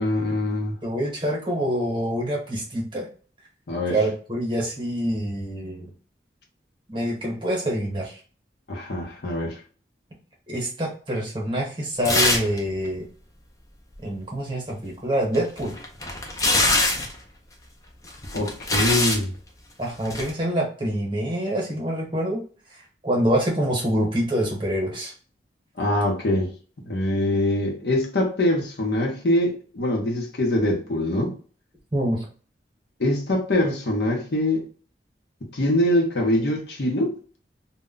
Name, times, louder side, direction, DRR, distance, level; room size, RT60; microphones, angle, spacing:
voice 1, 0.0-0.8 3.7-4.0 8.7-9.6 18.3-19.3 25.8-26.5 26.8-31.3 33.0-34.6 35.4-37.1, left 1 dB, 65° left, 0.7 m, -23 dB
voice 2, 0.8-3.1 3.9-5.9 6.9-8.2 10.5-13.0 14.0-15.8 19.8-22.4 23.0-25.1 31.9-32.2, equal, 25° right, 0.9 m, -26 dB
sound 1, 12.0-12.6 12.8-12.9 15.3-17.1 18.1-19.2 20.0-20.3, left 2 dB, 20° left, 0.4 m, -23 dB
2.1 x 2.1 x 3.6 m
head